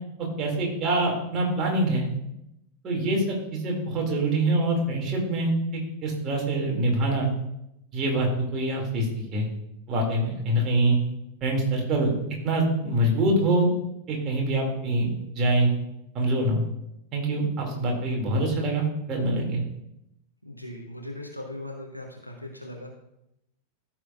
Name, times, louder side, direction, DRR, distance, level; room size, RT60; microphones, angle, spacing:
voice 1, 0.2-2.1 2.8-7.3 7.9-9.5 9.9-11.0 11.4-12.1 12.4-13.7 14.1-15.1 15.3-15.7 16.1-16.6 17.1-19.6, right 1 dB, 30° right, 0 dB, 2.6 m, -25 dB
voice 2, 20.4-23.1, left 1 dB, 90° right, 1 dB, 1.1 m, -39 dB
14.0 x 6.3 x 2.5 m, 0.83 s
figure-of-eight pair, 90°, 0 cm